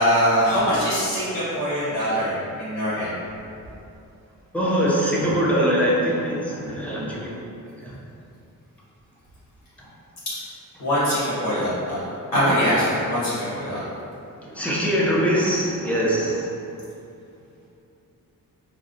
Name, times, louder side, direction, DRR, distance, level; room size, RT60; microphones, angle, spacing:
voice 1, 0.0-3.1 10.8-12.1 12.3-13.8, equal, 75° left, -10 dB, 1.2 m, -22 dB
voice 2, 4.5-7.4 7.8-7.9 14.4-16.5, equal, 5° left, -6 dB, 0.4 m, -22 dB
3.8 x 2.1 x 2.5 m, 2.6 s
wide cardioid pair, 175°, 34 cm